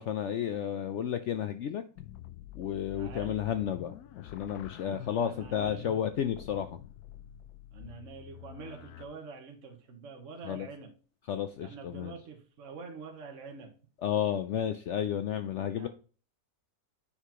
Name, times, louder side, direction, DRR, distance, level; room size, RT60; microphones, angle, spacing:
voice 1, 0.0-1.8 2.5-6.8 10.5-10.7 11.3-12.1 14.0-15.9, left 9 dB, 70° left, 9 dB, 0.7 m, -32 dB
sound 1, 2.0-9.1, left 12 dB, 85° left, 1.2 m, -47 dB
voice 2, 2.9-3.4 4.9-5.9 7.7-10.9 11.6-13.7 15.7-15.9, right 4 dB, 55° right, 3 dB, 1.5 m, -46 dB
9.6 x 5.7 x 2.9 m, 0.38 s
omnidirectional pair, 1.6 m